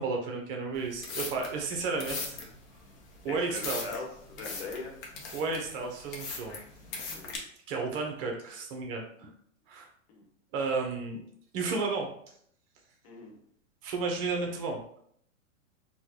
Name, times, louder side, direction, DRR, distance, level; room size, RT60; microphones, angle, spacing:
voice 1, 0.0-2.4 3.2-3.8 5.3-6.6 7.7-9.3 9.7-9.9 10.5-11.2 11.5-12.1 13.8-14.8, right 4 dB, 45° right, 1 dB, 0.9 m, -32 dB
sound 1, 0.7-7.4, left 4 dB, 30° left, 0.8 m, -40 dB
voice 2, 3.2-4.9 7.1-7.3 10.1-10.3 13.0-13.4, left 3 dB, 55° left, 1 dB, 1.2 m, -41 dB
4.3 x 2.3 x 2.8 m, 0.66 s
hypercardioid pair, 125°, 39 cm